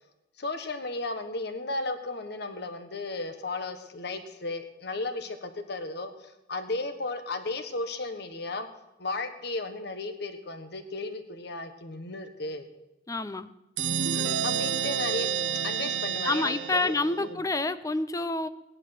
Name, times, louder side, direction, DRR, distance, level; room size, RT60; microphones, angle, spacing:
voice 1, 0.4-8.7 9.0-12.7 14.4-15.3 15.6-17.4, left 2 dB, 65° left, 8 dB, 1.4 m, -35 dB
voice 2, 13.1-13.5 16.2-18.5, left 2 dB, 20° left, 12 dB, 0.6 m, -28 dB
sound 1, 13.8-17.3, right 8 dB, 90° right, 0.6 m, -29 dB
17.0 x 11.0 x 6.0 m, 0.93 s
head